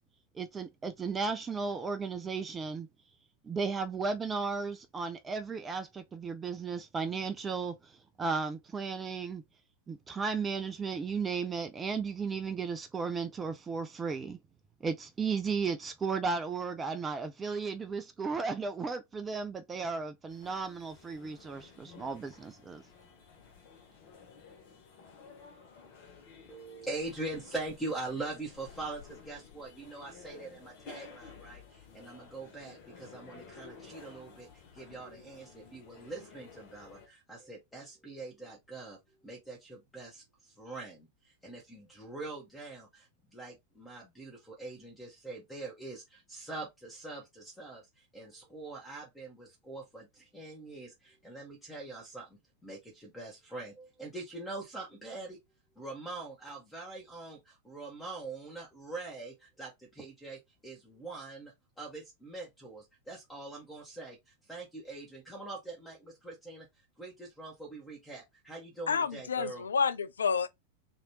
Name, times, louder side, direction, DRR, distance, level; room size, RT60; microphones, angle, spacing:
voice 1, 0.4-2.9 3.4-7.7 8.2-9.4 9.9-14.4 14.8-22.8, right 5 dB, 20° right, 0.4 m, -35 dB
sound 1, 20.3-37.1, left 5 dB, 50° left, 1.0 m, -53 dB
voice 2, 26.5-55.4 55.7-66.7 67.0-69.7, right 2 dB, 10° left, 1.1 m, -43 dB
voice 3, 68.9-70.5, left 6 dB, 70° left, 0.3 m, -29 dB
2.9 x 2.5 x 2.8 m
figure-of-eight pair, 90°, 0 cm